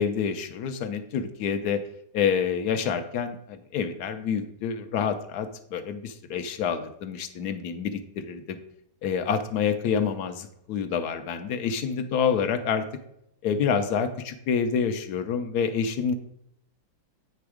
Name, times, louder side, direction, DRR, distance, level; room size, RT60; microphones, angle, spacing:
voice 1, 0.0-1.8 2.1-8.6 9.0-12.8 13.4-16.1, left 7 dB, 70° left, 9 dB, 1.1 m, -27 dB
8.9 x 3.4 x 4.8 m, 0.77 s
omnidirectional pair, 1.9 m